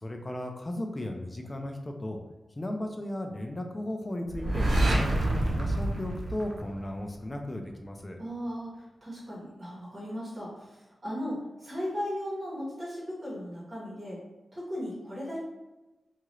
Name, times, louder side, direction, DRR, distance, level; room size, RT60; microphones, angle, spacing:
voice 1, 0.0-2.2 2.6-8.2, left 1 dB, 25° left, 3 dB, 0.4 m, -36 dB
sound 1, 4.3-7.2, right 1 dB, 70° right, 0.5 m, -27 dB
voice 2, 8.2-14.2 14.5-15.4, equal, 30° right, -6 dB, 1.3 m, -37 dB
2.8 x 2.4 x 3.0 m, 1.1 s
wide cardioid pair, 125°, 0 cm